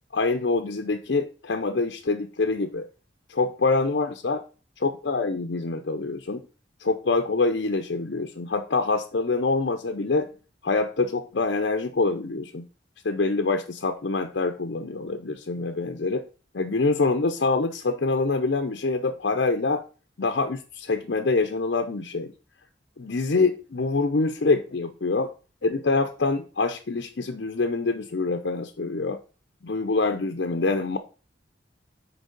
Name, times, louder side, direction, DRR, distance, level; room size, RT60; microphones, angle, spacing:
voice 1, 0.1-2.9 3.4-4.4 4.8-6.4 6.8-10.3 10.6-12.7 13.0-16.2 16.5-19.8 20.2-22.3 23.0-25.3 25.6-29.2 29.6-31.0, left 3 dB, 60° left, 5 dB, 0.6 m, -25 dB
6.3 x 4.7 x 5.2 m, 0.36 s
head